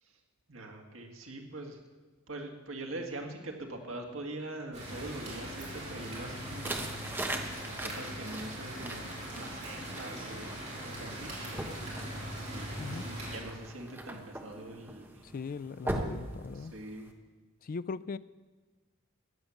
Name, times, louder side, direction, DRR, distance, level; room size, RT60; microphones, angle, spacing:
voice 1, 0.5-1.8 2.3-6.9 7.6-9.1 9.3-11.3 12.5-15.2 16.5-17.1, right 2 dB, 75° right, 3 dB, 2.0 m, -43 dB
sound 1, 4.7-13.4, right 1 dB, 35° right, 4.6 m, -41 dB
sound 2, 6.4-17.1, right 1 dB, 10° right, 1.1 m, -41 dB
voice 2, 15.2-16.7 17.6-18.2, left 4 dB, 45° left, 16 dB, 0.4 m, -39 dB
15.0 x 10.0 x 7.1 m, 1.3 s
head